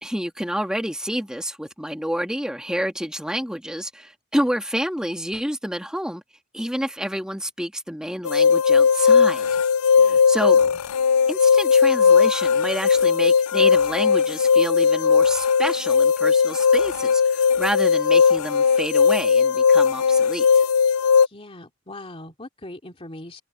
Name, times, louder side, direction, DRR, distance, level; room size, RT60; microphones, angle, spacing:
voice 1, 0.0-6.2 6.5-9.5 10.0-10.6 11.3-20.6, equal, 5° right, 1.6 m, -29 dB
sound 1, 8.2-21.3, left 6 dB, 90° left, 0.4 m, -18 dB
voice 2, 9.9-10.7 21.2-23.4, left 1 dB, 25° left, 2.6 m, -41 dB
head